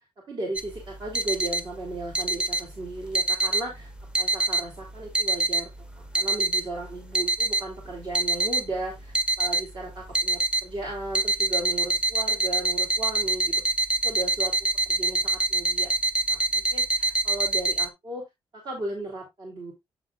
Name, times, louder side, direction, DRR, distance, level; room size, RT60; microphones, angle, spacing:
voice 1, 0.3-3.9 4.2-5.7 6.0-13.5 14.0-14.5 14.8-15.9 16.3-18.2 18.5-19.7, right 2 dB, 55° right, -1 dB, 2.8 m, -35 dB
sound 1, 0.6-17.9, right 2 dB, 10° right, 0.8 m, -26 dB
8.1 x 7.7 x 2.3 m, 0.18 s
cardioid pair, 105°, 9 cm